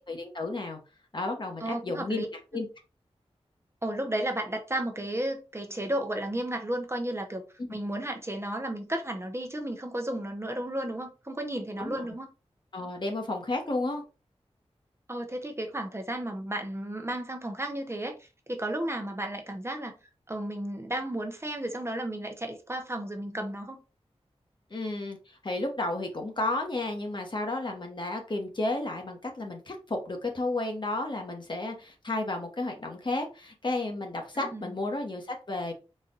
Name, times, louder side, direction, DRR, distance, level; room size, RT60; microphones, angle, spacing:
voice 1, 0.1-0.8 1.1-2.3 2.5-2.7 7.6-7.7 11.8-12.0 12.7-14.0 24.7-35.7, left 2 dB, 45° left, 1.2 m, -32 dB
voice 2, 1.6-2.3 3.8-7.4 7.7-12.3 15.1-19.9 20.3-23.8 34.5-34.7, right 1 dB, 25° right, 0.8 m, -33 dB
4.2 x 2.5 x 3.8 m
wide cardioid pair, 65°, 11 cm